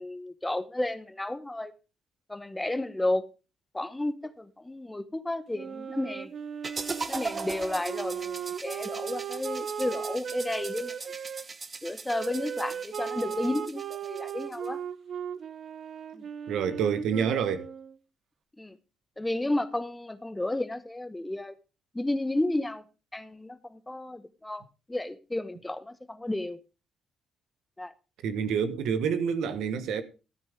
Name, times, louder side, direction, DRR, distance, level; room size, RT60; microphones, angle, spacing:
voice 1, 0.0-1.7 2.3-3.3 3.7-6.3 7.1-10.9 11.8-14.8 16.1-16.2 18.6-18.8 19.2-21.5 21.9-22.8 23.1-24.6 24.9-26.6 27.8-27.9, left 1 dB, 10° left, 0.9 m, -32 dB
Wind instrument woodwind instrument, 5.5-11.4 12.1-18.0, right 8 dB, 55° right, 0.9 m, -37 dB
sound 1, 6.6-14.7, right 4 dB, 30° right, 0.9 m, -39 dB
voice 2, 16.5-17.7 28.2-30.0, right 7 dB, 80° right, 1.3 m, -28 dB
13.5 x 9.1 x 3.6 m
cardioid pair, 90°, 0 cm